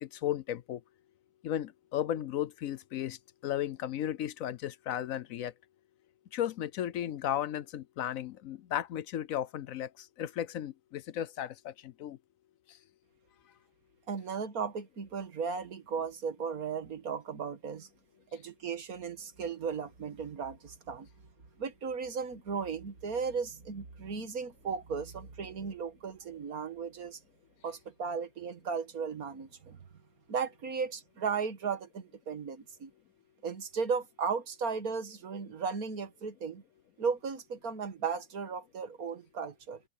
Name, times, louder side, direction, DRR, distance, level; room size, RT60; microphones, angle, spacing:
voice 1, 0.0-0.8 1.4-3.2 3.4-5.5 6.3-12.2, left 11 dB, 70° left, 1.0 m, -35 dB
voice 2, 14.1-17.9 18.3-21.1 21.6-27.2 27.6-29.8 30.3-32.9 33.4-36.6 37.0-39.8, right 5 dB, 75° right, 2.0 m, -36 dB
open air
omnidirectional pair, 1.6 m